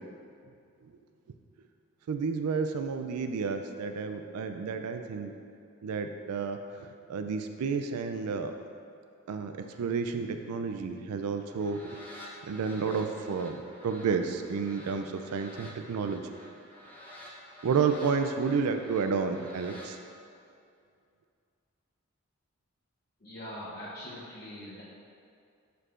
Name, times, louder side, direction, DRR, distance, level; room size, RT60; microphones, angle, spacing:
voice 1, 2.1-5.3 5.8-8.5 9.3-12.0 12.4-13.6 13.8-16.2 17.6-20.0, right 5 dB, 90° right, 6 dB, 0.4 m, -31 dB
sound 1, 11.4-19.9, left 1 dB, 10° left, 0.7 m, -50 dB
voice 2, 23.2-24.8, left 1 dB, 45° left, -9 dB, 0.9 m, -42 dB
11.0 x 4.6 x 2.5 m, 2.4 s
head